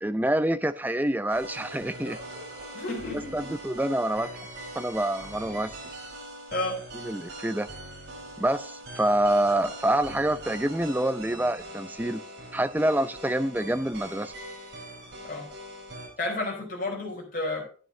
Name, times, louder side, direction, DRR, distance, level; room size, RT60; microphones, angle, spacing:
voice 1, 0.0-2.2 3.3-4.3 4.7-5.8 7.0-7.7 8.4-12.2 12.5-14.3, right 1 dB, 10° right, 0.5 m, -26 dB
sound 1, 1.3-16.1, right 1 dB, 65° right, 4.5 m, -42 dB
voice 2, 2.7-3.5 6.5-6.8 15.3-15.5 16.2-17.6, left 2 dB, 45° left, 4.4 m, -31 dB
12.5 x 8.9 x 2.8 m
head